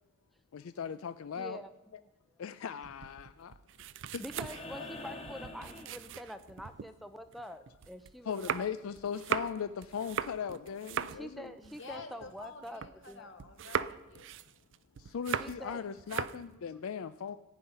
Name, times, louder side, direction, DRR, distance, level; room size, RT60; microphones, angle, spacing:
voice 1, 0.5-1.6 2.4-3.5 4.1-4.2 4.8-4.9 8.3-11.5 15.0-17.4, left 7 dB, 80° left, 13 dB, 0.4 m, -38 dB
voice 2, 1.4-1.7 4.2-8.7 11.1-13.3 15.4-15.8, equal, ahead, 8 dB, 0.4 m, -46 dB
sound 1, 2.8-6.9 7.3-13.1 13.4-15.7 16.0-16.5, right 7 dB, 60° right, 0.4 m, -39 dB
sound 2, 4.3-6.6 8.5-8.6, left 2 dB, 30° left, 1.6 m, -46 dB
voice 3, 11.6-14.3, left 4 dB, 60° left, 5 dB, 1.7 m, -49 dB
15.5 x 5.6 x 10.0 m, 1.0 s
head